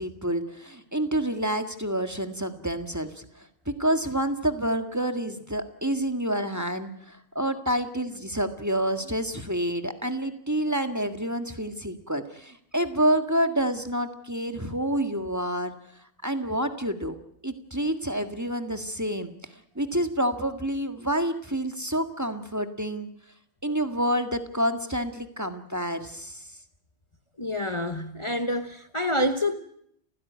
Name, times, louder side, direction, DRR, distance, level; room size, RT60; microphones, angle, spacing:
voice 1, 0.0-15.7 16.2-17.2 17.4-19.3 19.8-23.1 23.6-26.5, right 1 dB, 15° right, 1.8 m, -28 dB
voice 2, 27.4-29.6, left 1 dB, 25° left, 1.2 m, -27 dB
30.0 x 16.0 x 9.4 m
omnidirectional pair, 1.2 m